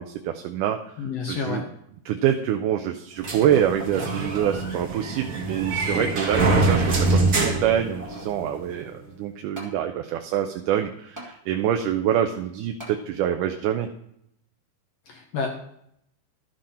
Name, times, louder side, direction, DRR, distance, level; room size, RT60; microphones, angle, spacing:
voice 1, 0.0-1.6 2.1-13.9, right 10 dB, 80° right, 5 dB, 2.1 m, -26 dB
voice 2, 1.0-1.6 15.1-15.5, left 5 dB, 65° left, 1 dB, 1.8 m, -29 dB
sound 1, 3.2-8.5, right 2 dB, 40° right, 1.2 m, -24 dB
sound 2, 4.1-4.7 5.2-5.3 6.0-6.6 7.6-8.4 9.6-9.8 11.2-11.3 12.8-13.0 13.6-13.7, right 1 dB, 5° right, 1.5 m, -42 dB
12.5 x 7.5 x 4.3 m, 0.73 s
omnidirectional pair, 3.8 m